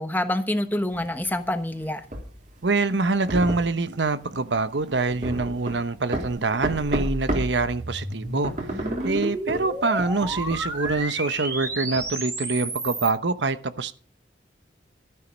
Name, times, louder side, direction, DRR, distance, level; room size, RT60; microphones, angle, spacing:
voice 1, 0.0-2.0, left 1 dB, 10° left, 1.1 m, -26 dB
sound 1, 0.9-7.6 7.9-12.1, right 1 dB, 45° right, 3.4 m, -33 dB
voice 2, 2.6-13.9, right 3 dB, 80° right, 1.0 m, -25 dB
sound 2, 6.4-13.2, right 1 dB, 15° right, 2.2 m, -32 dB
13.0 x 10.5 x 5.2 m
head